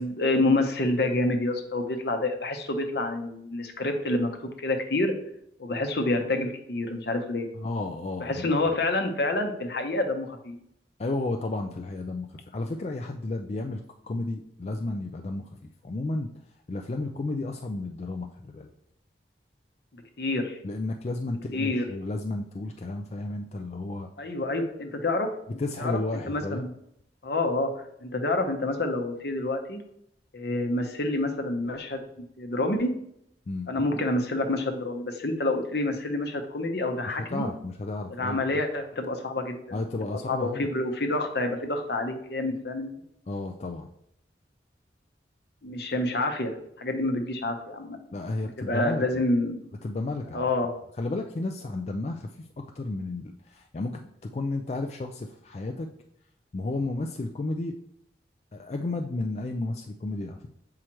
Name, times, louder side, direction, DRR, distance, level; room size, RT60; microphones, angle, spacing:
voice 1, 0.0-4.3 4.6-5.1 5.6-7.5 8.2-10.6 20.2-20.6 21.5-21.9 24.2-25.3 25.8-26.0 26.3-26.7 27.2-27.7 28.0-29.8 30.3-32.9 33.7-37.5 38.1-39.8 40.1-42.9 45.6-48.0 48.6-49.7 50.3-50.7, left 2 dB, 65° left, 5 dB, 0.9 m, -28 dB
voice 2, 7.5-8.6 11.0-15.5 15.8-16.3 16.7-18.7 20.6-24.1 25.6-26.7 33.5-33.7 37.3-38.4 39.7-40.7 43.3-43.9 48.1-49.0 49.8-50.4 51.0-55.9 56.5-57.8 58.5-60.5, left 2 dB, 40° left, 4 dB, 0.4 m, -32 dB
7.5 x 4.8 x 3.0 m, 0.74 s
head